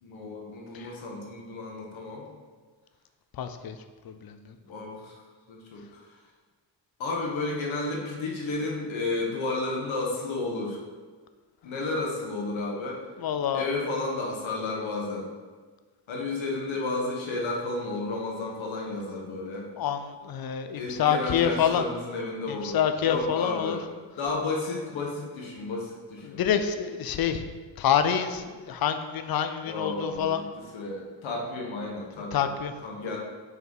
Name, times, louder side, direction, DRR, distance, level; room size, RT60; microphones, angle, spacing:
voice 1, 0.0-2.2 4.6-5.2 5.5-6.1 7.0-10.8 11.6-13.0 13.5-15.3 16.1-19.7 20.7-23.8 24.1-26.4 29.6-32.5 32.8-33.2, left 2 dB, 90° left, -1 dB, 1.2 m, -32 dB
voice 2, 3.4-3.8 4.1-4.5 13.2-13.7 19.8-21.8 22.5-23.8 26.2-27.5 27.8-30.4 32.3-32.7, left 8 dB, 55° left, 9 dB, 0.5 m, -27 dB
5.4 x 4.6 x 3.9 m, 1.4 s
wide cardioid pair, 165°, 45 cm